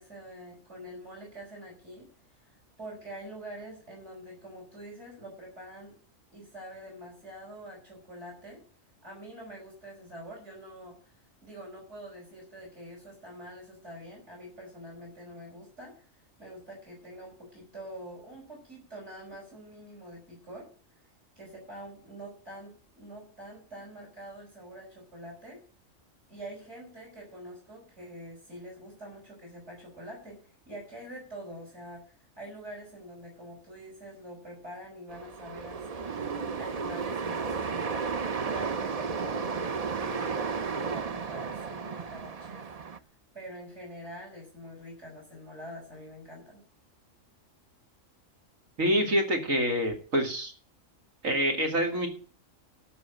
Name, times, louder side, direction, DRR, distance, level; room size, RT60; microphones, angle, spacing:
voice 1, 0.0-2.1 2.4-6.0 6.3-8.6 9.0-11.1 11.4-20.7 21.4-25.6 26.3-42.8 43.3-46.6, equal, 60° right, -1 dB, 5.8 m, -45 dB
sound 1, 35.1-43.0, right 5 dB, 40° right, 0.6 m, -33 dB
voice 2, 48.8-50.5 51.2-52.1, equal, 90° right, 3 dB, 2.9 m, -26 dB
12.5 x 6.4 x 9.0 m, 0.42 s
omnidirectional pair, 1.4 m